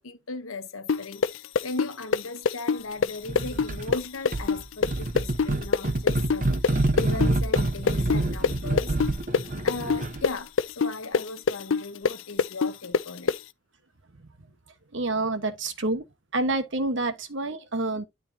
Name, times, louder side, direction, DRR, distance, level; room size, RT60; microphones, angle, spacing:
voice 1, 0.0-9.0 9.6-13.3, left 3 dB, 90° left, 1.1 m, -38 dB
sound 1, 0.9-8.5 8.8-13.4, left 5 dB, 65° left, 0.4 m, -24 dB
sound 2, 3.3-4.0 4.3-10.3, right 2 dB, 40° right, 0.8 m, -27 dB
voice 2, 14.9-16.0 16.3-18.1, right 2 dB, 60° right, 1.2 m, -28 dB
12.0 x 4.7 x 2.7 m
head